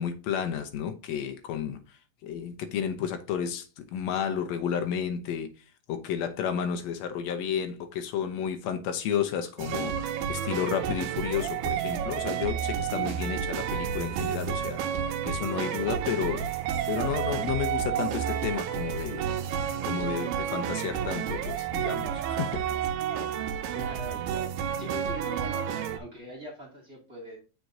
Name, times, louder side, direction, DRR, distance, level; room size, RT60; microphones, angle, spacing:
voice 1, 0.0-1.8 2.2-5.5 5.9-14.8 15.3-16.5 16.9-19.3 19.8-22.7 23.2-23.3, left 8 dB, 85° left, 1.5 m, -32 dB
sound 1, 9.6-26.0, right 9 dB, 85° right, 2.5 m, -30 dB
voice 2, 23.7-24.5 24.8-27.4, equal, 30° right, 2.4 m, -42 dB
7.9 x 5.2 x 2.7 m
omnidirectional pair, 4.1 m